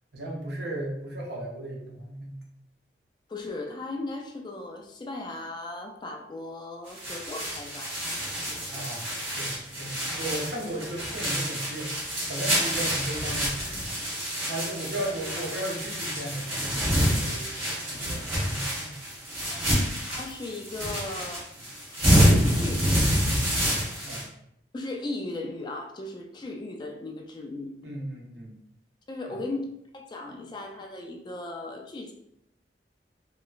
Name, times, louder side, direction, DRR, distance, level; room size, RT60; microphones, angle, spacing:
voice 1, 0.1-2.4 8.7-9.1 9.4-11.9 12.3-13.9 14.5-17.5 17.9-18.9 24.0-24.3 27.8-28.5 29.3-29.4, right 1 dB, 70° right, -1 dB, 0.7 m, -35 dB
voice 2, 3.3-7.9 19.5-21.5 22.2-23.0 24.7-27.7 29.1-32.1, left 2 dB, 25° left, 2 dB, 0.3 m, -37 dB
sound 1, 6.9-24.2, equal, 35° right, 1.1 m, -27 dB
3.0 x 2.9 x 2.3 m, 0.76 s
head